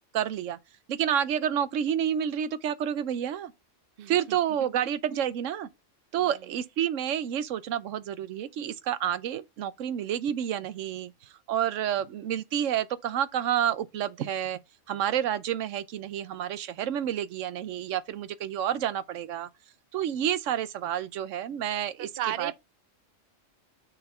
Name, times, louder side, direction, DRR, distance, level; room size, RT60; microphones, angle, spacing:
voice 1, 0.1-0.6 0.9-3.5 4.1-5.7 6.1-11.1 11.5-14.6 14.9-19.5 19.9-22.1 22.4-22.5, right 10 dB, 85° right, 1.0 m, -29 dB
voice 2, 4.0-4.4 4.8-5.2 6.2-6.4 22.0-22.5, right 11 dB, 55° right, 0.8 m, -35 dB
6.7 x 4.1 x 5.5 m
omnidirectional pair, 1.3 m